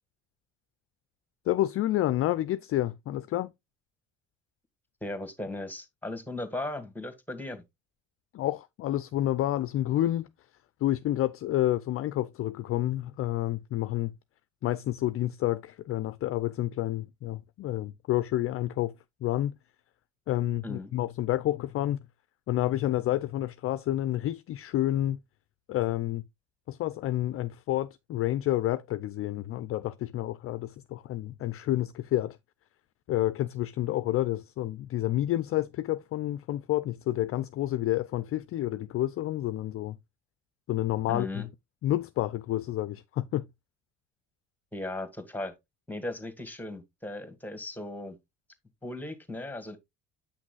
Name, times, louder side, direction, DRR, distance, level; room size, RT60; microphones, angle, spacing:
voice 1, 1.5-3.5 8.3-10.3 10.8-14.1 14.6-18.9 19.2-19.5 20.3-22.0 22.5-25.2 25.7-26.2 26.7-32.4 33.1-40.0 40.7-41.5 41.8-43.5, left 14 dB, 40° left, 0.4 m, -29 dB
voice 2, 5.0-7.6 20.6-20.9 41.1-41.5 44.7-45.5 45.9-48.2 48.8-49.8, left 2 dB, 5° left, 1.8 m, -37 dB
8.3 x 6.0 x 2.3 m
hypercardioid pair, 60°, 33 cm